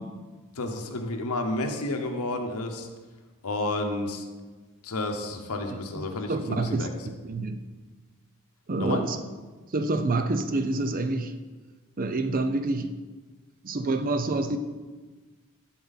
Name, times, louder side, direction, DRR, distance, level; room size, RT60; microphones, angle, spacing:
voice 1, 0.6-2.9 3.4-4.3 4.8-6.9 8.8-9.0, left 2 dB, 80° left, 4 dB, 0.9 m, -31 dB
voice 2, 6.1-7.7 8.7-9.2 9.7-11.3 12.0-13.0 13.6-14.6, right 2 dB, 40° right, 9 dB, 0.5 m, -27 dB
11.5 x 4.3 x 4.1 m, 1.3 s
head